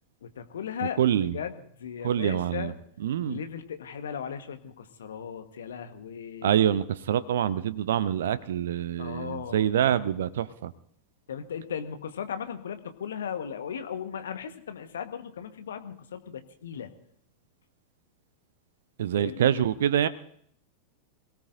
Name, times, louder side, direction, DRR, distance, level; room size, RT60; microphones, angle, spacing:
voice 1, 0.2-2.7 3.2-6.6 9.0-9.7 11.3-16.9 19.2-19.4, left 8 dB, 65° left, 8 dB, 1.3 m, -37 dB
voice 2, 1.0-1.3 2.0-2.7 3.0-3.4 6.4-10.7 19.0-20.1, right 10 dB, 60° right, 16 dB, 0.6 m, -25 dB
26.5 x 17.5 x 2.6 m, 0.63 s
figure-of-eight pair, 90°, 0 cm